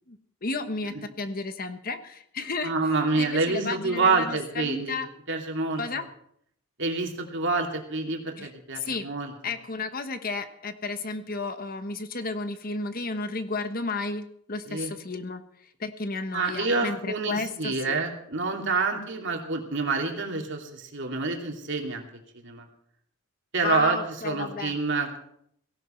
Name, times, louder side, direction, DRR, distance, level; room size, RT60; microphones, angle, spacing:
voice 1, 0.1-2.7 3.1-5.1 5.8-6.0 8.4-8.5 8.8-9.1 9.4-15.4 15.8-18.0 23.6-24.8, left 3 dB, 40° left, 9 dB, 1.2 m, -32 dB
voice 2, 2.6-5.0 5.3-6.0 6.8-9.3 14.7-14.9 16.3-22.1 22.4-22.7 23.5-24.0 24.2-25.2, right 3 dB, 55° right, 2 dB, 2.8 m, -27 dB
17.0 x 17.0 x 4.5 m, 0.69 s
head